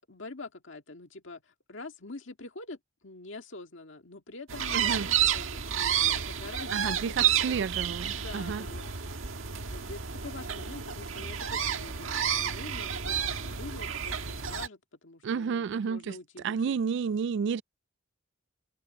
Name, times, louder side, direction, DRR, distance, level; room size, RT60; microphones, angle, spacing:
voice 1, 0.1-7.7 8.1-9.3 9.6-16.8, left 2 dB, 65° left, 2.1 m, -45 dB
sound 1, 4.5-14.7, right 8 dB, 80° right, 1.6 m, -30 dB
voice 2, 4.7-5.1 6.7-8.7 15.2-16.1 16.4-17.6, right 6 dB, 60° right, 0.3 m, -31 dB
head